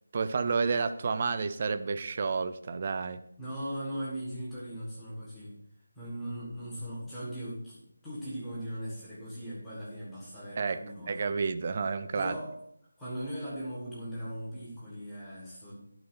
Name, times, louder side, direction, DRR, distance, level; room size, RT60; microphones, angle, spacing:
voice 1, 0.1-3.2 10.6-12.3, right 5 dB, 20° right, 11 dB, 0.3 m, -30 dB
voice 2, 3.4-5.5 5.9-11.3 12.1-12.5 13.0-15.7, equal, ahead, -11 dB, 1.5 m, -39 dB
11.5 x 3.9 x 5.6 m, 0.73 s
figure-of-eight pair, 180°, 0 cm